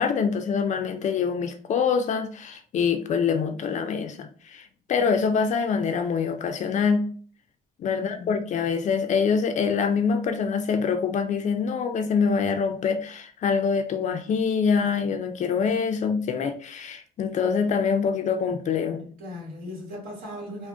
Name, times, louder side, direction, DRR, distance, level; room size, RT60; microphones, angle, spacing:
voice 1, 0.0-7.0 7.8-19.0, left 6 dB, 45° left, 0.4 m, -25 dB
voice 2, 7.9-8.4 19.0-20.7, left 1 dB, 60° right, 1.3 m, -38 dB
3.5 x 2.1 x 2.5 m
cardioid pair, 110°, 17 cm